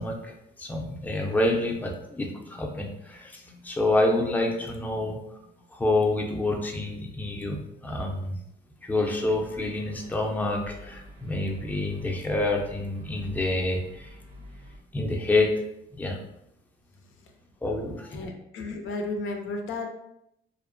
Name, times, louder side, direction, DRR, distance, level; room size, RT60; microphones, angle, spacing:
voice 1, 0.0-5.4 5.7-8.4 8.8-14.2 14.9-15.5 15.9-16.2 17.6-18.2, left 2 dB, 10° left, 1 dB, 0.4 m, -28 dB
sound 1, 9.1-14.8, equal, 80° right, 0.6 m, -48 dB
voice 2, 18.1-19.9, left 2 dB, 80° left, 3 dB, 0.5 m, -34 dB
2.7 x 2.1 x 2.5 m, 0.81 s
cardioid pair, 90°, 20 cm